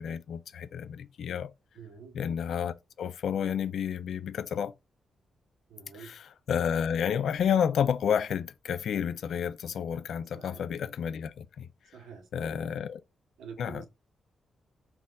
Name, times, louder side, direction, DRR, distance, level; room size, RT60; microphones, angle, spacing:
voice 1, 0.0-1.5 2.1-4.7 6.0-11.7 12.3-13.0 13.6-13.9, left 8 dB, 60° left, 0.3 m, -30 dB
voice 2, 1.7-2.2 5.7-6.2 10.3-10.6 11.9-12.8 13.4-13.9, right 6 dB, 85° right, 0.9 m, -47 dB
4.2 x 2.3 x 3.7 m
wide cardioid pair, 175°, 0 cm